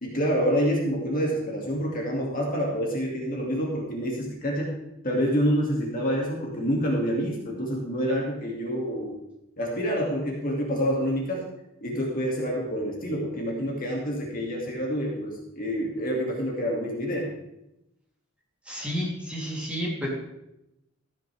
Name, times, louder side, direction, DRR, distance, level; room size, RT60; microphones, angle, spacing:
voice 1, 0.0-4.8 5.0-9.2 9.6-11.5 11.8-17.3, equal, 45° left, -2 dB, 2.3 m, -27 dB
voice 2, 18.6-20.1, equal, 5° right, -5 dB, 3.2 m, -31 dB
14.0 x 9.8 x 3.5 m, 0.87 s
head